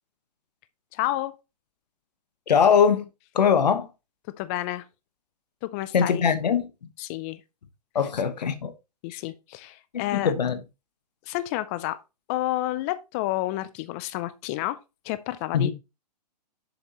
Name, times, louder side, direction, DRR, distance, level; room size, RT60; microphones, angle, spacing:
voice 1, 0.9-1.3 4.4-4.8 5.6-6.2 7.0-7.4 9.0-10.3 11.3-12.0 12.3-14.8 15.0-15.7, left 16 dB, 20° left, 0.3 m, -30 dB
voice 2, 2.5-3.1 3.3-3.9 5.9-6.7 7.9-8.7 9.1-9.2 10.1-10.6 15.5-15.7, left 7 dB, 80° left, 1.3 m, -21 dB
7.2 x 6.6 x 2.9 m
hypercardioid pair, 145°, 21 cm